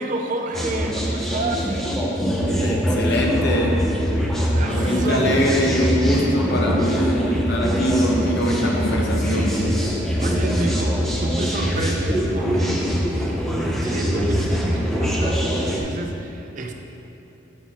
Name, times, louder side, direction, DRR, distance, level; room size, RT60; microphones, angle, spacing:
voice 1, 0.0-1.7 4.5-5.6 10.2-13.5 13.8-16.7, right 2 dB, 40° right, 3 dB, 0.4 m, -30 dB
sound 1, 0.5-15.8, equal, ahead, 0.7 m, -23 dB
voice 2, 2.6-3.8 4.5-9.5, left 1 dB, 55° left, -1 dB, 0.9 m, -23 dB
8.3 x 4.6 x 4.2 m, 2.9 s
head